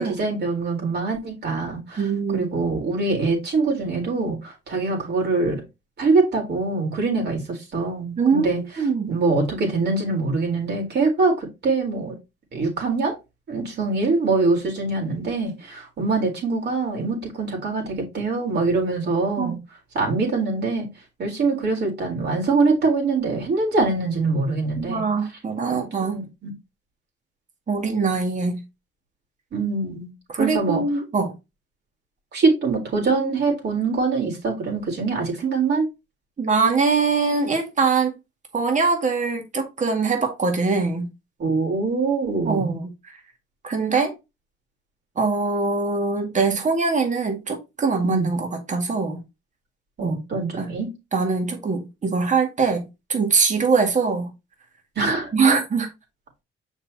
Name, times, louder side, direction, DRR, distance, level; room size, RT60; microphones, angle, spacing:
voice 1, 0.0-5.6 6.0-8.6 9.1-12.2 12.5-13.2 13.5-19.6 19.9-20.9 21.2-25.1 25.6-26.5 29.5-30.1 30.4-30.8 32.3-35.9 41.4-42.7 48.0-48.3 50.0-50.9 55.0-55.3, right 3 dB, 55° right, 4.0 m, -24 dB
voice 2, 2.0-2.5 8.2-9.1 19.4-19.5 24.8-26.2 27.7-28.6 30.3-31.3 36.4-38.1 38.5-41.1 42.5-42.9 43.6-44.1 45.2-49.2 50.0-50.2 50.6-50.7 51.1-54.3 55.3-55.9, right 4 dB, 40° right, 2.1 m, -22 dB
6.7 x 5.4 x 2.9 m
cardioid pair, 90°, 20 cm